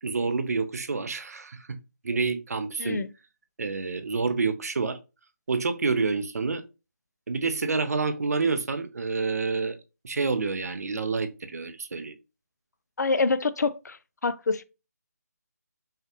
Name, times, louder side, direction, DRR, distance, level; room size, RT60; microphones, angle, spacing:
voice 1, 0.0-1.8 2.0-3.1 3.6-5.0 5.5-6.6 7.3-9.8 10.0-12.2, right 4 dB, 65° right, 0.7 m, -28 dB
voice 2, 13.0-14.0 14.2-14.6, left 4 dB, 75° left, 0.5 m, -26 dB
5.6 x 2.5 x 2.8 m
figure-of-eight pair, 165°, 9 cm